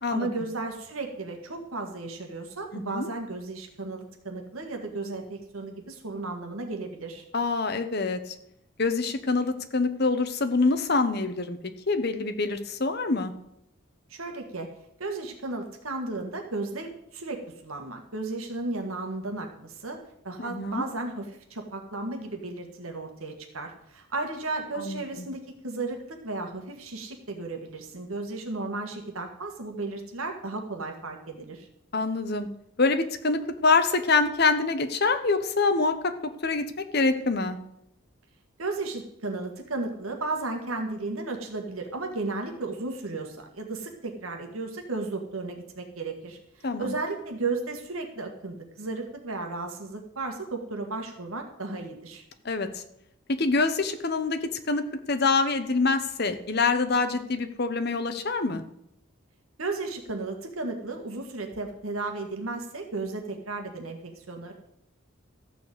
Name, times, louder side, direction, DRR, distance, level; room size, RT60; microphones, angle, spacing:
voice 1, 0.1-7.2 14.1-14.7 15.0-20.0 20.2-31.7 38.6-52.2 59.6-64.5, right 3 dB, 85° right, 3 dB, 1.7 m, -34 dB
voice 2, 2.7-3.1 7.3-8.3 8.8-11.6 11.9-13.3 20.4-20.8 24.8-25.0 31.9-32.5 32.8-36.1 36.4-36.6 36.9-37.6 46.6-46.9 52.4-52.8 53.3-54.4 54.7-58.6, left 3 dB, 50° left, 8 dB, 1.0 m, -25 dB
13.5 x 5.1 x 8.1 m, 0.78 s
head